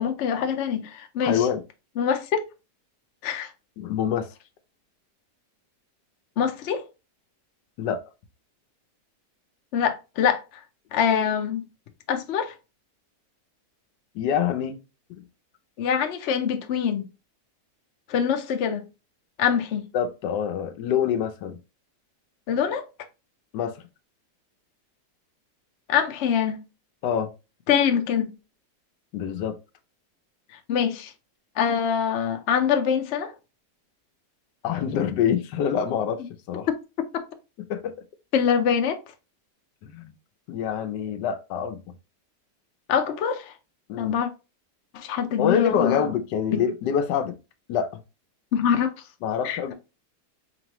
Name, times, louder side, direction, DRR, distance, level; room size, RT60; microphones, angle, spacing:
voice 1, 0.0-1.5 2.0-2.4 3.2-3.5 6.4-6.8 9.7-10.4 10.9-11.6 12.1-12.6 15.8-17.1 18.1-18.8 19.4-19.9 22.5-22.8 25.9-26.6 27.7-28.3 30.7-31.1 31.6-33.3 36.7-36.8 38.3-39.0 42.9-43.5 44.0-44.3 44.9-46.1 46.5-46.6 48.5-48.9 49.4-49.7, left 8 dB, 60° left, 0.7 m, -24 dB
voice 2, 1.2-1.6 3.8-4.3 7.8-8.0 14.1-14.8 15.2-15.3 19.9-21.6 23.5-23.7 27.0-27.3 29.1-29.6 34.6-36.7 37.6-37.9 39.8-40.1 40.5-41.8 43.9-44.2 45.4-47.4 47.7-48.0 49.2-49.7, left 8 dB, 85° left, 1.3 m, -26 dB
4.3 x 3.0 x 2.9 m
omnidirectional pair, 1.8 m